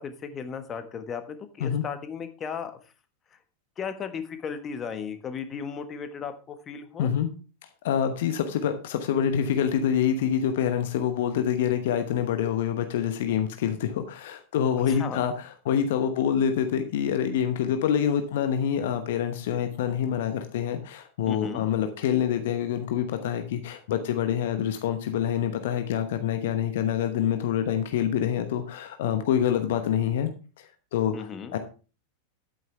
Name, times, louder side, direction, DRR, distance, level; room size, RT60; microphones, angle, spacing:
voice 1, 0.0-2.7 3.8-7.1 14.9-15.2 21.3-21.6 31.1-31.5, left 6 dB, 25° left, 8 dB, 1.4 m, -35 dB
voice 2, 7.0-7.3 7.8-30.3 30.6-30.7 30.9-31.6, left 9 dB, 55° left, 7 dB, 1.0 m, -26 dB
10.5 x 9.2 x 3.4 m, 0.35 s
figure-of-eight pair, 90°, 0 cm